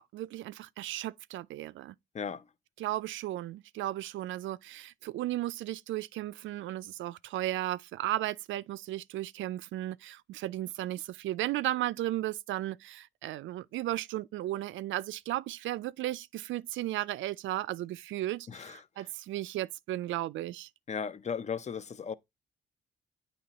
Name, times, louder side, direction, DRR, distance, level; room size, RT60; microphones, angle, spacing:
voice 1, 0.1-2.0 2.8-20.7, right 14 dB, 75° right, 0.4 m, -35 dB
voice 2, 18.5-18.8 20.9-22.1, left 6 dB, 35° left, 0.6 m, -36 dB
8.6 x 3.0 x 4.0 m
cardioid pair, 90°, 20 cm